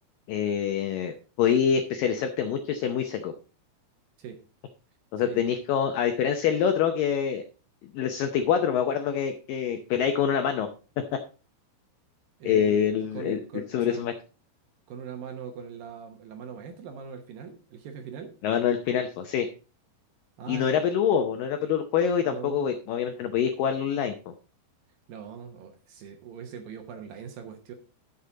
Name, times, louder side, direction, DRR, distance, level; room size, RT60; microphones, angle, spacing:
voice 1, 0.3-3.3 5.1-7.4 7.9-10.7 12.4-13.4 13.7-14.1 18.4-19.5 20.5-24.2, left 8 dB, 85° left, 7 dB, 1.9 m, -25 dB
voice 2, 12.4-12.9 13.1-14.1 14.9-18.3 20.4-20.9 22.2-22.7 25.1-27.7, right 7 dB, 70° right, 5 dB, 2.4 m, -41 dB
11.5 x 7.2 x 3.8 m, 0.34 s
omnidirectional pair, 5.1 m